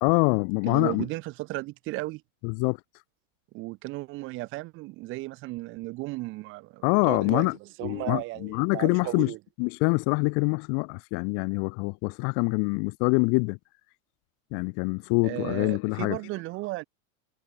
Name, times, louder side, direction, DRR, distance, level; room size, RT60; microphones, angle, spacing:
voice 1, 0.0-1.1 2.4-2.8 6.8-7.6 7.8-9.3 9.6-13.6 14.5-16.2, left 38 dB, 35° left, 0.6 m, -25 dB
voice 2, 0.6-2.2 3.5-7.5 7.8-9.4 15.2-16.8, right 21 dB, 30° right, 0.8 m, -35 dB
supercardioid pair, 150°, 41 cm